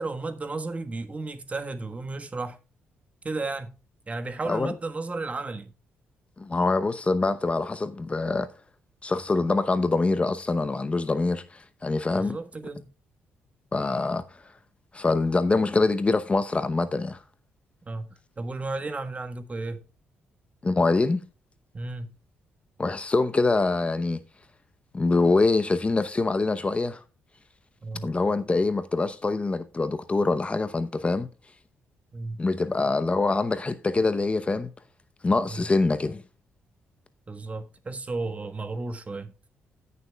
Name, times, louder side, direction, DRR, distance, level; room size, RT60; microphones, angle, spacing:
voice 1, 0.0-2.6 3.2-3.7 4.1-5.7 12.1-12.8 17.9-19.8 21.7-22.1 27.8-28.1 32.1-32.4 35.4-35.7 37.3-39.3, right 3 dB, 30° right, 1.4 m, -33 dB
voice 2, 6.4-8.5 9.0-12.4 13.7-14.2 14.9-17.2 20.6-21.2 22.8-24.2 24.9-27.0 28.0-31.3 32.4-34.7 35.2-36.2, left 3 dB, 25° left, 0.8 m, -24 dB
17.5 x 6.8 x 2.3 m
cardioid pair, 75°, 4 cm